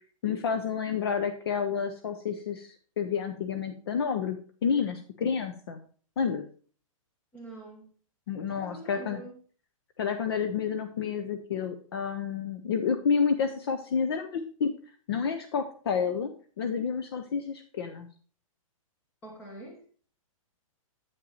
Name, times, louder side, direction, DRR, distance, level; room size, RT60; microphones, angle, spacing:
voice 1, 0.2-5.8 6.2-6.4 8.3-9.2 10.0-14.7 15.1-18.1, left 6 dB, 45° left, 0.7 m, -30 dB
voice 2, 7.3-7.9 8.3-9.3 19.2-19.8, right 2 dB, 10° left, 1.4 m, -45 dB
8.4 x 5.7 x 4.0 m
hypercardioid pair, 175°, 18 cm